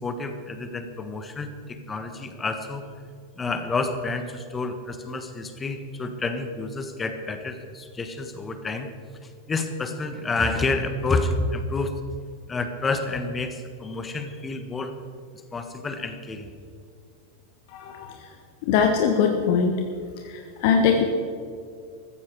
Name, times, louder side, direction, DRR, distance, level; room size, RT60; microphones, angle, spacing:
voice 1, 0.0-2.8 3.4-8.9 9.2-12.0 12.5-14.9 15.5-16.5, left 3 dB, 15° left, 8 dB, 1.3 m, -29 dB
voice 2, 17.7-18.1 18.6-19.7 20.2-21.0, left 6 dB, 50° left, 4 dB, 1.3 m, -21 dB
14.5 x 14.5 x 4.8 m, 2.3 s
figure-of-eight pair, 90°, 0 cm